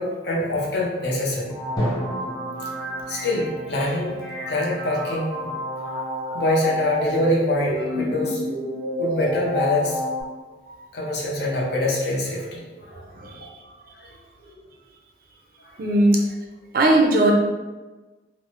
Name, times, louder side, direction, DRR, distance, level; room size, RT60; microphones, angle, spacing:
voice 1, 0.0-1.5 2.6-8.5 9.0-10.0 10.9-13.0 13.9-14.1 14.4-14.6 15.6-15.9, left 1 dB, 65° left, -3 dB, 0.7 m, -25 dB
sound 1, 1.5-10.2, left 1 dB, ahead, 0.5 m, -30 dB
Drum, 1.8-5.5, equal, 20° left, 0.8 m, -32 dB
voice 2, 13.2-13.5 15.8-16.2 16.7-17.3, right 2 dB, 50° right, 0 dB, 0.4 m, -18 dB
3.1 x 2.0 x 3.0 m, 1.2 s
head